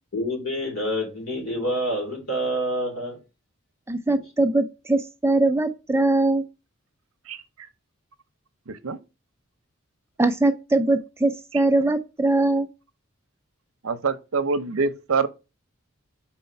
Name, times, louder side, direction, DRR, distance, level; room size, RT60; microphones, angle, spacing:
voice 1, 0.1-3.2, equal, 75° left, 3.0 m, -27 dB
voice 2, 3.9-6.4 10.2-12.7, right 2 dB, 10° right, 0.4 m, -21 dB
voice 3, 8.7-9.0 13.8-15.3, right 4 dB, 85° right, 0.7 m, -25 dB
4.6 x 4.3 x 5.5 m
head